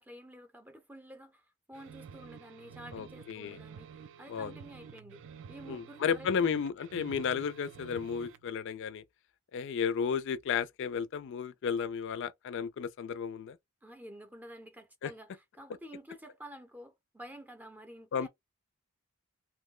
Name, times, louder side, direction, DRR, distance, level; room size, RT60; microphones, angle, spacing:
voice 1, 0.0-5.2 5.5-6.5 13.8-18.3, equal, 10° right, 0.6 m, -50 dB
sound 1, 1.7-8.5, right 7 dB, 60° right, 0.4 m, -50 dB
voice 2, 2.9-3.6 4.3-4.5 5.7-9.0 9.5-13.6 15.0-15.1 18.1-18.3, left 6 dB, 60° left, 0.3 m, -33 dB
2.9 x 2.1 x 3.6 m
head